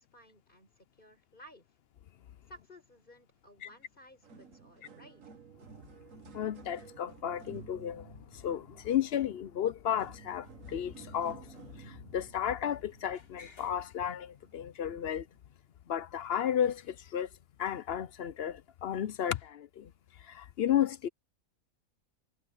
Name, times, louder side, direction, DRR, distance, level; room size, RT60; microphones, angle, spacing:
voice 1, 0.0-1.7 2.5-5.2, equal, 35° left, 5.0 m, -56 dB
sound 1, 3.7-3.8 4.1-13.8 14.4-14.6 15.4-15.5, right 6 dB, 70° right, 1.8 m, -53 dB
voice 2, 6.3-15.3 15.9-17.3 17.6-19.9 20.2-21.1, left 10 dB, 55° left, 0.7 m, -33 dB
sound 2, 10.3-10.6 12.3-14.4 15.0-15.1 16.3-16.4 16.6-17.0 17.7-17.9, left 4 dB, 90° left, 3.8 m, -60 dB
omnidirectional pair, 1.4 m